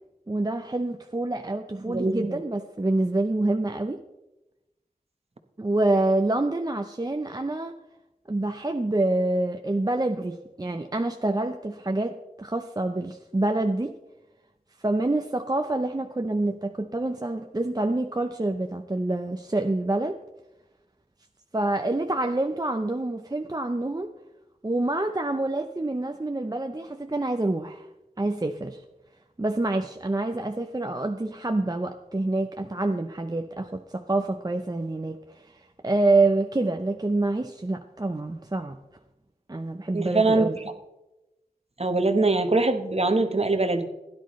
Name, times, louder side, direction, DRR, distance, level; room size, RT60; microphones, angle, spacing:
voice 1, 0.3-4.0 5.6-7.8 8.3-13.9 14.8-20.2 21.5-24.1 24.6-27.9 28.2-28.8 29.4-38.8 39.5-40.6, right 2 dB, 25° right, 5 dB, 0.6 m, -27 dB
voice 2, 1.8-2.4 39.9-40.5 41.8-43.9, right 3 dB, 45° right, 7 dB, 1.1 m, -23 dB
16.0 x 10.5 x 3.1 m, 0.99 s
wide cardioid pair, 40°, 15 cm